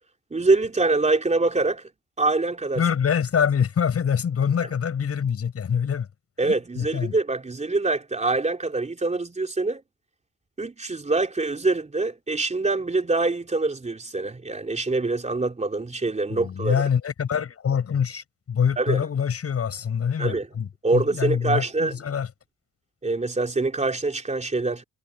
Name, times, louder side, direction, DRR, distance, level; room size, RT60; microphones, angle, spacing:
voice 1, 0.3-1.9 2.2-2.8 6.4-9.8 10.6-16.8 18.8-19.0 20.2-20.5 20.8-21.9 23.0-24.8, right 3 dB, 25° right, 4.1 m, -24 dB
voice 2, 2.8-6.1 6.4-7.1 16.3-22.3, left 7 dB, 50° left, 7.7 m, -25 dB
cardioid pair, 90°, 30 cm